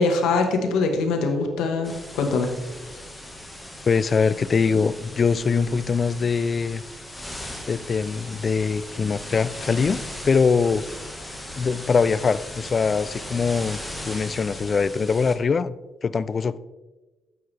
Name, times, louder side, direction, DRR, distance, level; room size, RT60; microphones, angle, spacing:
voice 1, 0.0-2.5, left 3 dB, 85° left, 4 dB, 1.4 m, -23 dB
sound 1, 1.8-15.3, left 1 dB, 10° left, 1.5 m, -38 dB
voice 2, 3.9-6.8 7.7-10.0 10.2-10.8 11.6-15.7 16.0-16.6, left 5 dB, 40° left, 17 dB, 0.4 m, -22 dB
9.4 x 7.7 x 3.4 m, 1.2 s
cardioid pair, 90°, 0 cm